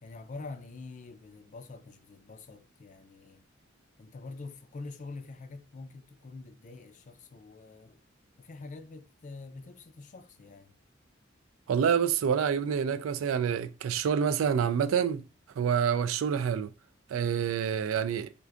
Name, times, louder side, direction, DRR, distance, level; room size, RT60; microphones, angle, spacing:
voice 1, 0.0-3.4 4.0-8.0 8.4-10.7, left 3 dB, 40° left, 0.4 m, -45 dB
voice 2, 11.7-15.2 15.6-16.7 17.1-18.3, right 7 dB, 90° right, 0.3 m, -27 dB
4.4 x 2.5 x 2.4 m
head